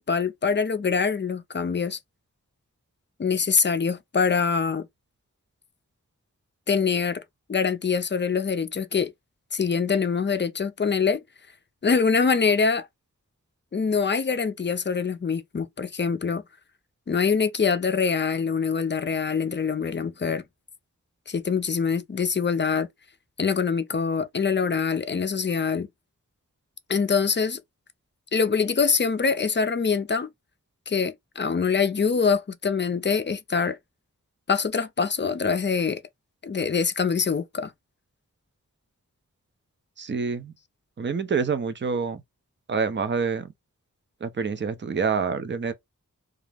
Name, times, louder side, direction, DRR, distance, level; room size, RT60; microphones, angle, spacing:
voice 1, 0.0-2.0 3.2-4.9 6.7-7.2 7.5-9.1 9.5-11.2 11.8-12.9 13.7-16.4 17.1-20.4 21.3-22.9 23.4-25.9 26.9-27.6 28.3-30.3 30.9-33.8 34.5-36.0 36.4-37.7, left 5 dB, 35° left, 0.4 m, -24 dB
voice 2, 40.0-40.5 41.0-42.2 42.7-43.5 44.2-45.7, right 5 dB, 35° right, 0.5 m, -27 dB
2.3 x 2.0 x 3.2 m
wide cardioid pair, 60°, 32 cm